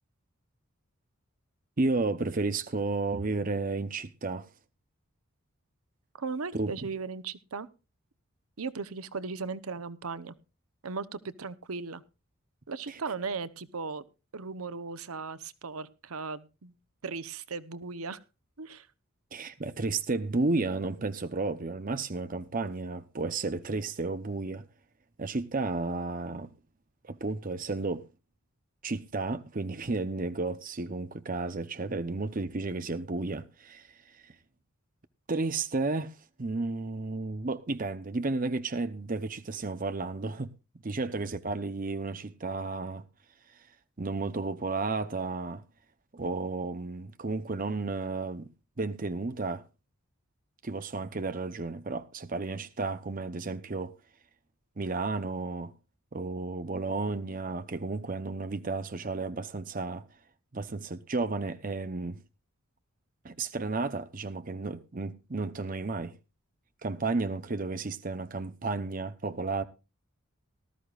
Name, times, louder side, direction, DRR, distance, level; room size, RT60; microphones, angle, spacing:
voice 1, 1.8-4.5 6.5-6.7 12.9-13.0 19.3-24.6 25.2-26.5 27.0-28.0 28.8-33.9 34.1-34.3 35.3-40.5 40.8-43.1 44.0-45.6 46.1-48.5 48.8-49.6 50.6-53.9 54.8-55.7 56.1-60.1 60.5-62.2 63.2-66.2 66.8-69.6, right 3 dB, 40° right, 0.7 m, -32 dB
voice 2, 6.1-7.7 8.6-10.3 10.8-12.0 12.7-14.0 14.3-16.7 17.0-18.2 18.6-18.9, right 4 dB, 90° right, 0.9 m, -37 dB
18.5 x 13.5 x 2.4 m
head